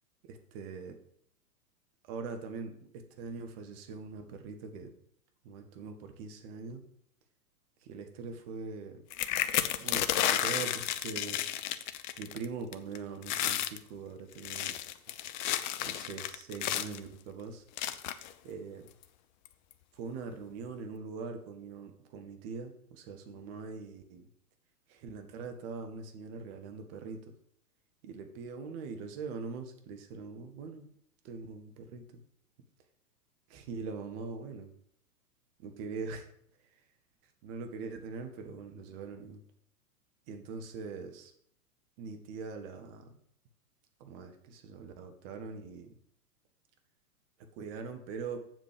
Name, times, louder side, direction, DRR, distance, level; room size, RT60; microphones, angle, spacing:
voice 1, 0.2-1.0 2.0-4.9 5.4-6.8 7.8-9.0 9.8-11.4 12.2-14.8 15.4-17.6 18.4-18.9 19.9-24.3 24.9-27.2 28.0-30.9 31.2-32.2 33.5-34.7 35.6-36.3 37.4-39.4 40.3-41.3 42.0-43.2 44.0-46.0 47.6-48.5, right 5 dB, 40° right, 6 dB, 1.6 m, -42 dB
sound 1, 9.1-12.4 12.7-13.0 13.2-13.8 14.3-17.0 17.8-18.3 19.0-19.1 19.4-19.7, left 12 dB, 30° left, 0.5 m, -32 dB
7.8 x 7.6 x 5.1 m, 0.69 s
figure-of-eight pair, 105°, 45 cm